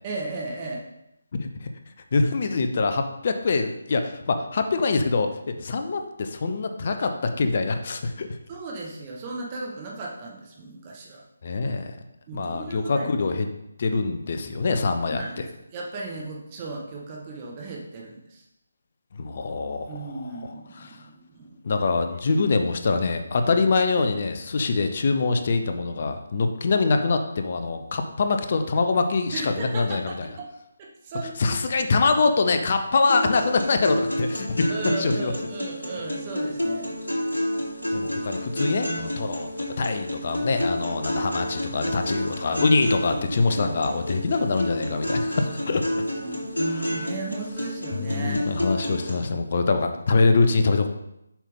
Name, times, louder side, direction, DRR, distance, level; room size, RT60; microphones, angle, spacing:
voice 1, 0.0-0.8 8.5-11.2 12.3-13.1 15.0-18.4 19.9-21.8 22.2-22.4 29.3-30.5 30.8-31.6 34.7-36.9 45.4-46.5 46.8-48.5 50.1-50.2, right 3 dB, 25° right, -2 dB, 1.4 m, -36 dB
voice 2, 1.3-1.7 2.1-8.3 11.4-12.0 12.3-13.5 13.8-15.2 19.1-20.0 20.8-21.0 21.6-30.3 31.4-34.7 35.0-35.3 37.9-39.5 39.8-45.8 46.7-47.0 47.9-50.9, left 3 dB, 40° left, 7 dB, 0.7 m, -24 dB
sound 1, 33.1-49.1, equal, 75° left, 2.9 m, -29 dB
7.2 x 5.6 x 3.7 m, 0.84 s
figure-of-eight pair, 150°, 0 cm